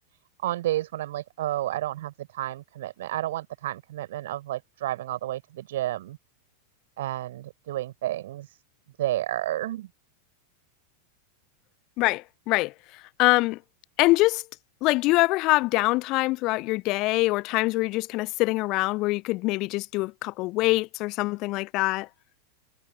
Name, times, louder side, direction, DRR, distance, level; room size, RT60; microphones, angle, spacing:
voice 1, 0.4-6.2 7.0-8.6 9.0-9.9, right 14 dB, 55° right, 5.1 m, -31 dB
voice 2, 12.0-12.7 13.2-13.6 14.0-14.4 14.8-22.1, left 21 dB, 40° left, 0.8 m, -24 dB
figure-of-eight pair, 90°, 0 cm